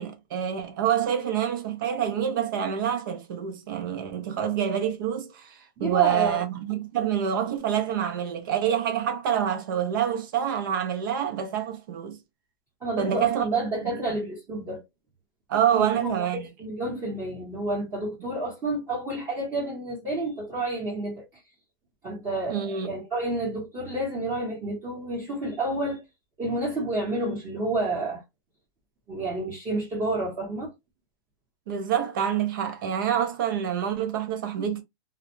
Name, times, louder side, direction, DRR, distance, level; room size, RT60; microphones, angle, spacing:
voice 1, 0.0-12.2 13.0-13.4 13.9-14.0 15.5-16.4 22.5-22.9 31.7-34.8, right 9 dB, 55° right, 0.6 m, -27 dB
voice 2, 5.8-6.4 12.8-14.8 15.7-21.2 22.0-26.0 26.4-28.2 29.1-30.7, right 2 dB, 20° right, 1.0 m, -30 dB
2.4 x 2.1 x 2.9 m
supercardioid pair, 155°, 13 cm